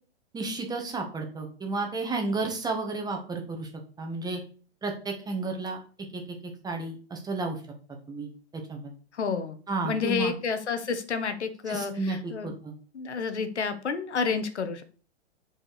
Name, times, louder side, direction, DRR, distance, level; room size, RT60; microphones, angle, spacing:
voice 1, 0.3-3.7 4.0-4.4 4.8-5.8 6.1-6.2 6.6-7.6 8.1-8.3 8.7-8.9 9.7-10.3 11.7-12.7, right 3 dB, 10° right, 3 dB, 1.5 m, -32 dB
voice 2, 9.1-9.6 9.8-12.6 12.9-14.8, left 5 dB, 80° left, 9 dB, 1.3 m, -30 dB
7.5 x 4.9 x 4.9 m, 0.41 s
hypercardioid pair, 125°, 34 cm